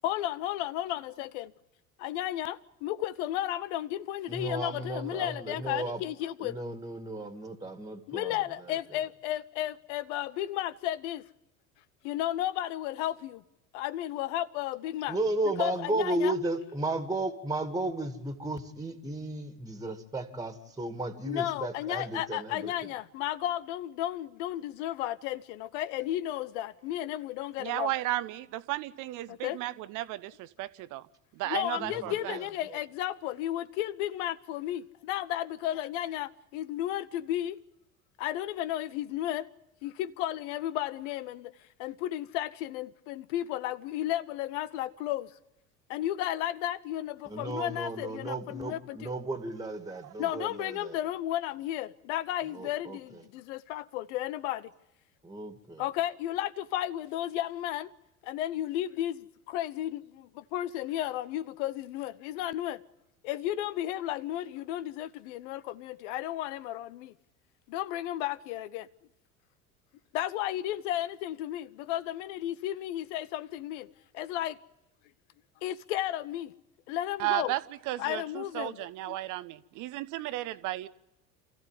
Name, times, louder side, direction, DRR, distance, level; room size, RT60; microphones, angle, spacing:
voice 1, 0.0-1.5 2.0-6.6 8.1-11.2 12.0-13.4 13.7-15.2 15.6-16.4 21.2-27.9 29.3-29.6 31.5-37.6 38.2-39.5 39.8-41.5 41.8-45.3 45.9-49.1 50.2-54.7 55.8-57.9 58.2-62.8 63.2-67.1 67.7-68.9 70.1-73.9 74.1-74.6 75.6-76.5 76.9-77.5 78.0-78.7, left 13 dB, 55° left, 0.9 m, -33 dB
voice 2, 4.3-6.0 6.4-8.4 15.1-22.7 31.8-32.5 47.3-50.9 52.5-53.0 55.2-55.8, right 2 dB, 10° right, 2.2 m, -34 dB
voice 3, 27.6-31.0 31.4-32.4 50.0-50.1 77.2-77.6 77.9-80.9, right 16 dB, 45° right, 1.0 m, -34 dB
27.5 x 15.0 x 9.1 m
figure-of-eight pair, 70°, 43 cm